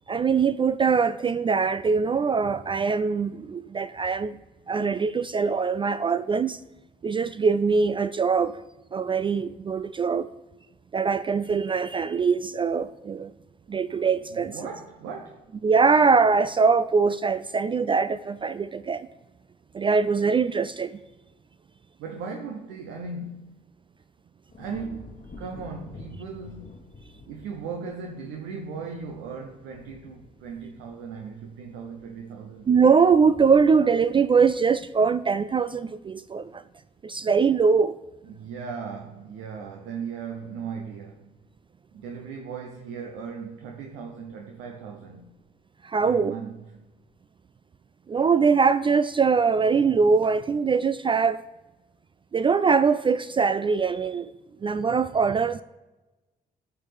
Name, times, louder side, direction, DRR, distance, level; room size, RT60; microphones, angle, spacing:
voice 1, 0.1-4.4 4.7-6.6 7.0-8.6 8.9-10.3 10.9-13.3 13.7-14.5 15.6-19.1 19.7-20.9 32.7-36.6 37.0-38.0 45.8-46.3 48.1-51.4 52.3-54.3 54.6-55.6, right 5 dB, 25° right, 0.3 m, -22 dB
voice 2, 14.3-15.5 22.0-23.6 24.6-26.9 27.2-32.7 38.2-41.3 41.9-45.3 46.0-46.9, right 5 dB, 65° right, 0.8 m, -37 dB
sound 1, 24.5-35.8 36.2-36.7, left 2 dB, 35° left, 1.3 m, -49 dB
13.5 x 4.6 x 3.4 m
figure-of-eight pair, 45°, 21 cm